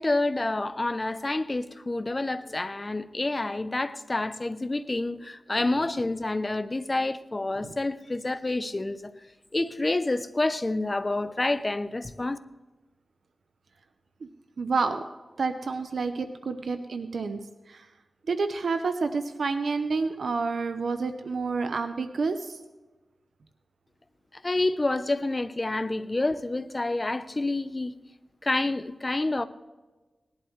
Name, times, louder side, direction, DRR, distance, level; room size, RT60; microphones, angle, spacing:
voice 1, 0.0-9.1 9.5-12.4 24.4-27.9 28.4-29.5, left 2 dB, 30° left, 0.6 m, -28 dB
voice 2, 14.6-15.0 15.4-17.4 18.3-22.6, right 4 dB, 80° right, 0.6 m, -29 dB
19.0 x 11.0 x 3.2 m
wide cardioid pair, 80°, 0 cm